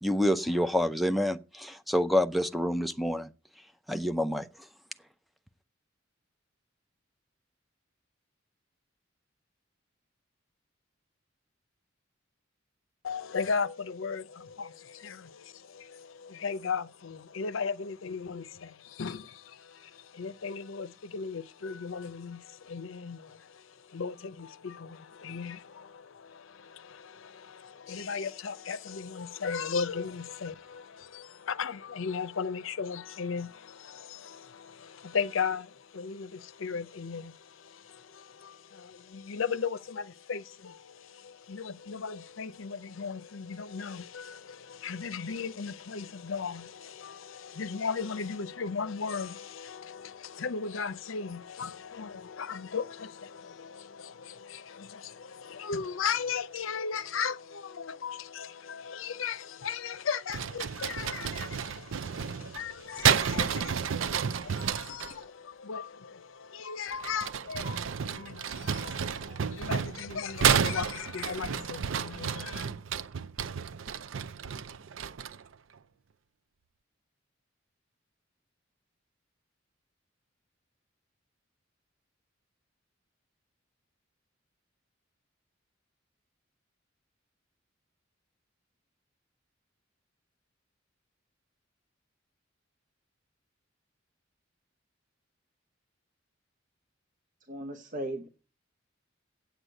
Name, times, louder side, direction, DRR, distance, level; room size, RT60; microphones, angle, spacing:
voice 1, 0.0-3.3 3.9-4.5, left 1 dB, ahead, 0.6 m, -27 dB
voice 2, 13.0-72.7, left 5 dB, 80° left, 0.6 m, -37 dB
sound 1, 60.3-65.1 66.9-75.5, right 7 dB, 80° right, 0.5 m, -31 dB
voice 3, 97.5-98.3, right 1 dB, 40° right, 0.9 m, -36 dB
8.1 x 8.1 x 9.0 m
head